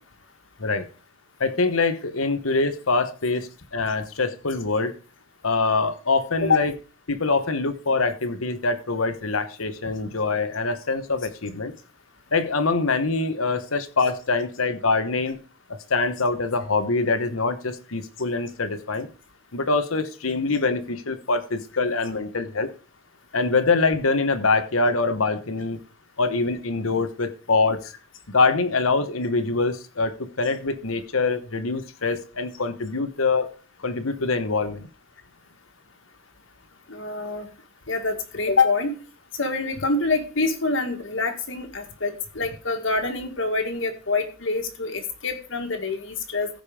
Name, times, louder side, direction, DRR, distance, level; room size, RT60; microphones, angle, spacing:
voice 1, 1.4-4.9 5.4-6.7 7.1-11.7 12.3-15.4 15.7-19.1 19.5-22.7 23.3-25.8 26.2-27.8 28.3-33.5 33.8-34.9, left 3 dB, 90° left, 1.2 m, -24 dB
voice 2, 36.9-37.5 37.9-39.0 39.4-46.5, left 3 dB, 70° left, 2.0 m, -25 dB
15.5 x 5.4 x 5.0 m
head